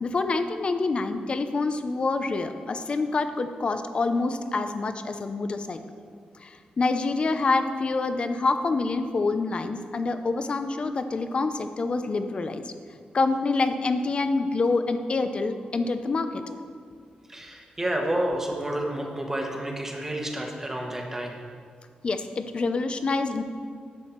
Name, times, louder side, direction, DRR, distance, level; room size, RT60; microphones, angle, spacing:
voice 1, 0.0-5.8 6.4-12.7 13.1-16.5 22.0-23.4, left 3 dB, 40° left, 9 dB, 0.6 m, -26 dB
voice 2, 17.3-21.3, right 1 dB, 15° right, 1 dB, 1.3 m, -30 dB
11.5 x 7.7 x 4.5 m, 2.2 s
wide cardioid pair, 145°, 3 cm